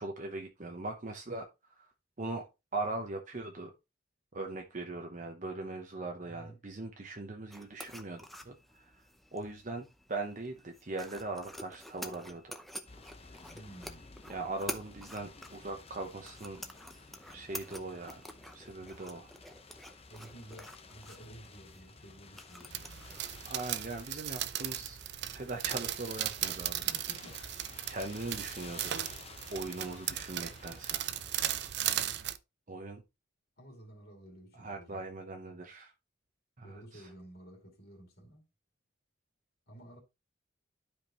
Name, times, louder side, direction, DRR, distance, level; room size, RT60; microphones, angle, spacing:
voice 1, 0.0-1.9 2.2-2.5 2.7-3.7 4.3-9.0 9.3-12.6 14.3-16.6 17.3-18.2 18.5-19.3 23.5-25.0 25.3-26.8 27.9-29.0 29.5-31.0 32.7-33.0 34.5-35.9 36.6-37.1, right 2 dB, 40° right, 0.9 m, -40 dB
voice 2, 6.2-6.6 13.5-14.1 20.1-23.2 26.8-27.5 33.6-35.1 36.6-38.5 39.7-40.0, right 1 dB, 55° left, 2.5 m, -52 dB
sound 1, 7.5-23.9, equal, ahead, 0.7 m, -49 dB
sound 2, 12.8-31.7, left 4 dB, 30° left, 0.9 m, -54 dB
sound 3, 22.7-32.4, right 12 dB, 60° right, 0.5 m, -37 dB
12.0 x 5.1 x 3.0 m
head